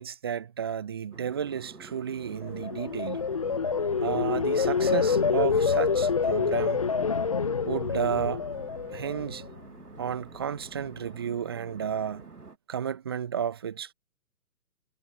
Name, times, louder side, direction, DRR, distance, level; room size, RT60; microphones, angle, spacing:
voice 1, 0.0-3.2 4.0-6.9 7.6-8.5 8.9-9.4 10.0-12.3 12.7-13.9, right 8 dB, 15° right, 0.6 m, -32 dB
sound 1, 1.1-12.6, right 4 dB, 75° right, 2.9 m, -48 dB
sound 2, 2.4-9.6 10.0-10.4, left 5 dB, 25° left, 0.6 m, -27 dB
figure-of-eight pair, 130°, 46 cm